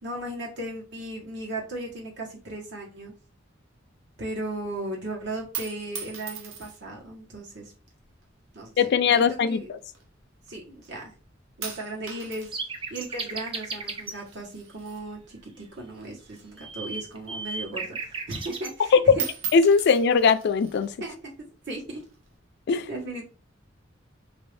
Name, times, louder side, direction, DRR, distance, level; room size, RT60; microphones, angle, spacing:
voice 1, 0.0-3.1 4.2-7.7 8.5-9.7 10.5-11.1 11.6-12.6 12.9-19.2 21.0-22.0 22.9-23.3, right 1 dB, 60° right, 1.2 m, -36 dB
sound 1, 5.4-7.0 7.8-8.3 9.1-10.5 10.8-11.2 11.6-15.7 16.0-17.6 18.0-18.1 18.4-18.8 19.1-20.9 21.7-22.3, right 8 dB, 85° right, 0.8 m, -39 dB
voice 2, 8.8-9.8 18.9-19.0 19.5-20.9 22.7-22.9, left 5 dB, 60° left, 0.3 m, -20 dB
sound 2, 12.5-14.2 16.3-18.7, right 3 dB, 25° right, 0.5 m, -35 dB
3.0 x 2.6 x 3.3 m
head